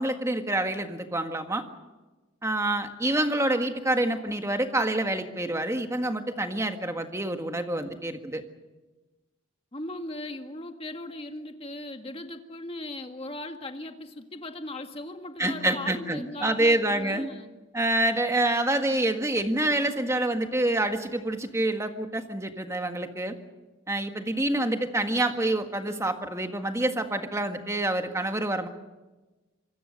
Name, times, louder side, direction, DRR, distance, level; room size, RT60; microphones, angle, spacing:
voice 1, 0.0-1.6 2.4-8.4 15.4-17.3 17.7-23.4 23.9-28.7, right 1 dB, 15° right, 6 dB, 1.7 m, -27 dB
voice 2, 9.7-17.5, left 1 dB, 30° left, 5 dB, 1.9 m, -38 dB
26.5 x 22.5 x 6.6 m, 1.1 s
head